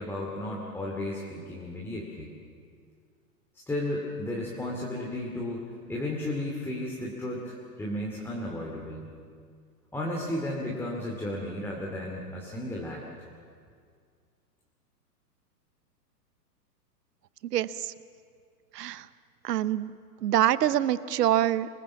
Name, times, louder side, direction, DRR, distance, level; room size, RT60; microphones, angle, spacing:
voice 1, 0.0-2.3 3.7-9.1 9.9-13.0, left 1 dB, 5° left, -3 dB, 2.5 m, -34 dB
voice 2, 17.5-17.9 18.7-19.0 19.4-19.9 20.2-21.7, right 12 dB, 75° right, 16 dB, 1.0 m, -25 dB
25.5 x 21.0 x 7.2 m, 2.1 s
hypercardioid pair, 140°, 48 cm